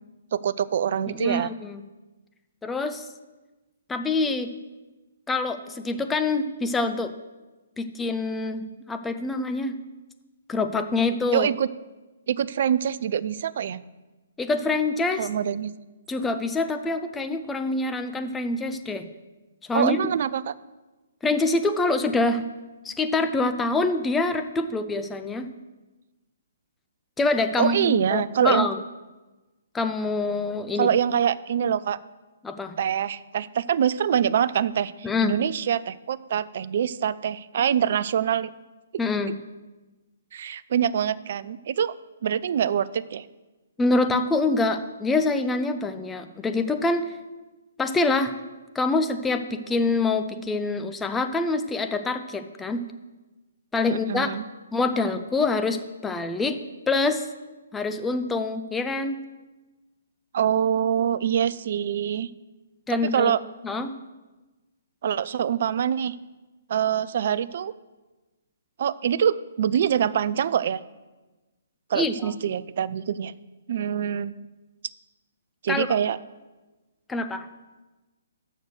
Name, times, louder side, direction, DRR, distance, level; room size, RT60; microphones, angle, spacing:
voice 1, 0.3-1.5 11.3-11.7 12.3-13.8 15.2-15.7 19.7-20.5 27.6-28.7 30.8-32.0 32.8-38.5 40.3-41.9 42.2-43.3 53.9-54.4 60.3-62.3 62.9-63.4 65.0-66.2 66.7-67.7 68.8-70.8 71.9-73.4 73.7-74.3 75.6-76.2, right 9 dB, 50° right, 18 dB, 0.3 m, -25 dB
voice 2, 1.1-1.8 2.6-3.1 3.9-4.5 5.3-7.1 7.8-9.8 10.5-11.5 14.4-15.3 16.1-19.1 19.7-20.0 21.2-22.4 22.8-25.5 27.2-28.8 29.7-30.9 32.4-32.7 35.0-35.4 39.0-39.3 43.8-47.1 47.8-48.3 48.7-52.8 53.7-54.3 54.7-56.6 56.9-57.3 57.7-59.2 62.9-63.3 63.6-64.0 71.9-72.3 75.7-76.0 77.1-77.5, left 3 dB, 10° left, 7 dB, 0.5 m, -25 dB
6.5 x 6.4 x 6.4 m, 1.2 s
figure-of-eight pair, 130°, 0 cm